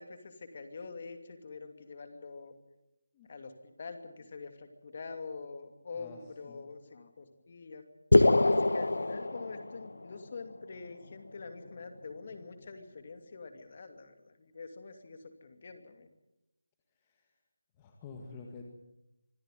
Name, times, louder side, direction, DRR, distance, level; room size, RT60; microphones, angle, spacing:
voice 1, 0.0-2.5 3.3-7.8 8.4-16.1, left 4 dB, 35° left, 7 dB, 2.6 m, -45 dB
voice 2, 5.9-6.6 17.0-17.3 17.8-18.6, left 4 dB, 15° left, 2 dB, 1.9 m, -49 dB
sound 1, 8.1-10.1, left 2 dB, 80° left, 1.4 m, -24 dB
25.0 x 14.0 x 9.2 m, 0.90 s
figure-of-eight pair, 175°, 0 cm